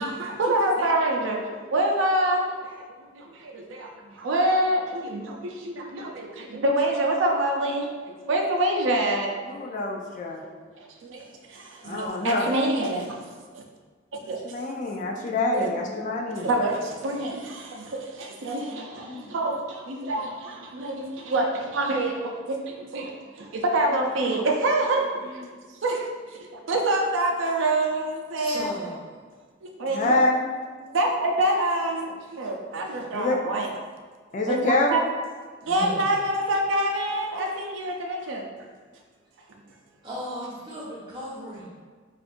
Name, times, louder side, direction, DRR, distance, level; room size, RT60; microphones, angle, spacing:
voice 1, 0.0-2.8 3.1-9.6 10.4-13.6 14.1-14.4 15.5-15.7 16.3-25.4 25.8-28.7 29.6-30.2 30.9-33.7 34.5-35.0 35.6-38.5, right 1 dB, 80° right, 1 dB, 0.5 m, -26 dB
voice 2, 9.5-10.4 11.8-12.5 14.2-16.5 18.7-19.3 20.8-20.9 29.9-30.5 33.1-33.4 34.3-35.0, left 2 dB, 40° left, 1 dB, 0.3 m, -26 dB
voice 3, 28.4-29.1 35.6-36.2 40.0-41.7, equal, 25° right, -7 dB, 1.0 m, -36 dB
4.9 x 2.4 x 2.5 m, 1.5 s
head